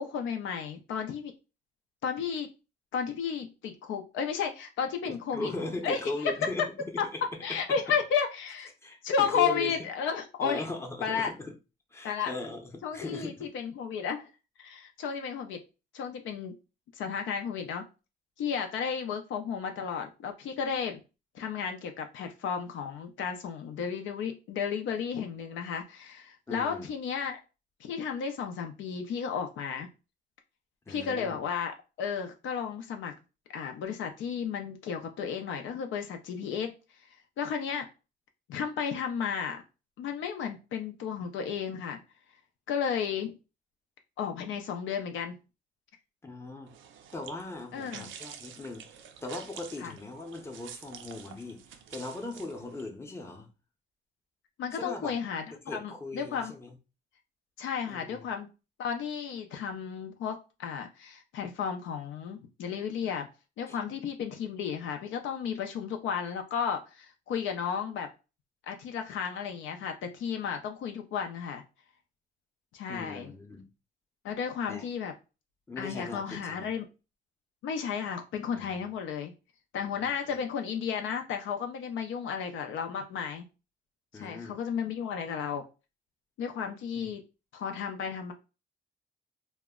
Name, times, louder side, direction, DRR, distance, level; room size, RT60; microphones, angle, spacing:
voice 1, 0.0-1.3 2.0-2.5 2.9-5.5 5.8-6.0 7.0-7.1 7.4-8.7 9.0-10.7 11.0-11.3 12.0-12.3 12.8-14.3 14.6-15.6 15.9-16.5 16.9-17.9 18.4-21.0 21.3-27.4 27.8-29.9 30.9-31.7 32.0-33.2 33.5-36.7 37.4-37.9 38.5-39.6 40.0-42.0 42.7-43.3 44.2-45.4 47.7-48.1 49.8-49.9 54.6-56.5 57.6-58.5 58.8-63.3 63.6-68.1 68.7-71.6 72.7-73.3 74.2-75.1 75.8-76.9 77.6-79.3 79.7-83.4 84.2-85.6 86.4-87.2 87.5-88.3, left 7 dB, 75° left, 0.5 m, -33 dB
voice 2, 5.0-7.6 8.8-9.8 10.4-11.5 11.9-13.5 26.5-26.9 30.9-31.4 46.2-46.7 47.1-51.6 51.9-53.5 54.7-55.1 55.7-56.8 57.9-58.3 63.7-63.8 72.9-73.7 74.7-74.9 75.7-76.7 78.6-78.9 79.8-80.4 84.1-84.6 87.0-87.1, left 2 dB, 15° left, 0.6 m, -39 dB
sound 1, 46.7-52.9, right 8 dB, 80° right, 0.4 m, -48 dB
2.1 x 2.0 x 3.5 m
cardioid pair, 90°, 20 cm